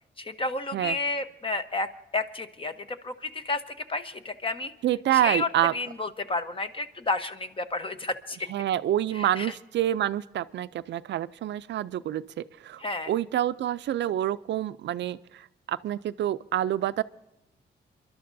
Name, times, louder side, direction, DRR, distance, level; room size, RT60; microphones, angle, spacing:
voice 1, 0.2-1.9 2.1-4.7 5.1-8.5 9.1-9.5 12.8-13.1, left 3 dB, 30° left, 9 dB, 0.9 m, -31 dB
voice 2, 4.8-5.7 8.5-17.0, right 12 dB, 80° right, 15 dB, 0.4 m, -27 dB
29.0 x 12.0 x 2.6 m, 0.91 s
cardioid pair, 110°, 18 cm